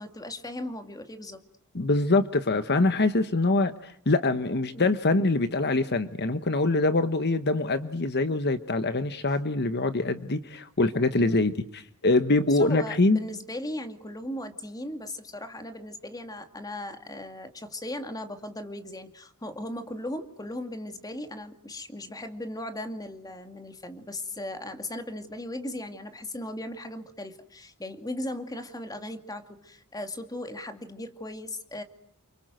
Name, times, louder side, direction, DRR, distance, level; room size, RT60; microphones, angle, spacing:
voice 1, 0.0-1.4 4.7-5.0 11.2-11.5 12.5-31.8, left 1 dB, 15° left, 8 dB, 2.3 m, -37 dB
voice 2, 1.7-11.5 12.0-13.2, left 2 dB, 50° left, 11 dB, 1.2 m, -24 dB
29.5 x 26.0 x 7.8 m, 0.65 s
head